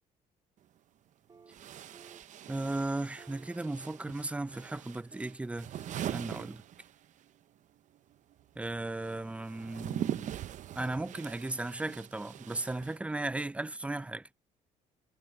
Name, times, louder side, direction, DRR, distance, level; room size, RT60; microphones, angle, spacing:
sound 1, 0.6-0.7 1.5-7.3 7.6-13.4, right 11 dB, 60° right, 0.8 m, -42 dB
sound 2, 1.3-1.6 1.9-2.3 2.6-2.9 3.2-4.1 4.5-4.8 5.1-5.4 5.7-6.4, right 5 dB, 30° right, 2.0 m, -56 dB
voice 1, 2.5-5.7 6.1-6.6 8.6-10.3 10.8-14.3, right 2 dB, 10° right, 0.5 m, -36 dB
cardioid pair, 100°, 15 cm